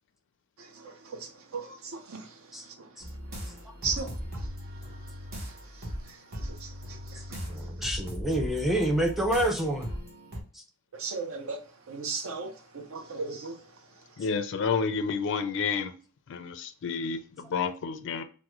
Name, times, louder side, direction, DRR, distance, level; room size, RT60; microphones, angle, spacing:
sound 1, 3.0-10.4, equal, 45° right, 1.0 m, -38 dB
voice 1, 7.5-9.9, right 1 dB, ahead, 0.4 m, -27 dB
voice 2, 11.0-11.6 11.9-13.5, right 4 dB, 65° right, 0.6 m, -34 dB
voice 3, 14.2-15.9 16.3-18.2, left 5 dB, 60° left, 0.4 m, -30 dB
3.5 x 2.1 x 3.0 m
head